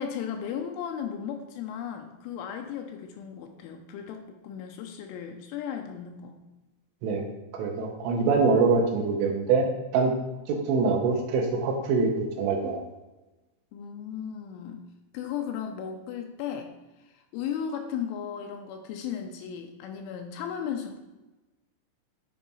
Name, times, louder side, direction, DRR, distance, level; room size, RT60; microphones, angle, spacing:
voice 1, 0.0-6.4 13.7-14.9 15.1-16.7 17.1-21.0, left 8 dB, 80° left, 4 dB, 3.1 m, -35 dB
voice 2, 7.5-10.1 10.5-12.8, right 4 dB, 75° right, 2 dB, 3.5 m, -24 dB
10.5 x 3.6 x 5.5 m, 1.1 s
omnidirectional pair, 5.8 m